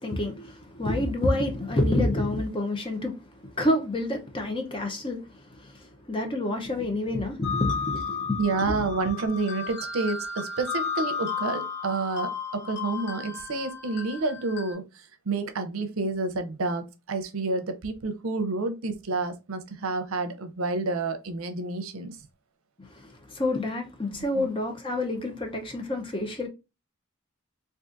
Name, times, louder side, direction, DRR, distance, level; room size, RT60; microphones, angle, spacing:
voice 1, 0.0-8.8 22.8-26.5, left 1 dB, 25° left, 0.6 m, -28 dB
sound 1, 7.4-14.7, left 5 dB, 50° left, 0.9 m, -33 dB
voice 2, 8.4-22.2 24.1-24.5, right 3 dB, 85° right, 0.6 m, -29 dB
3.7 x 2.4 x 2.4 m
head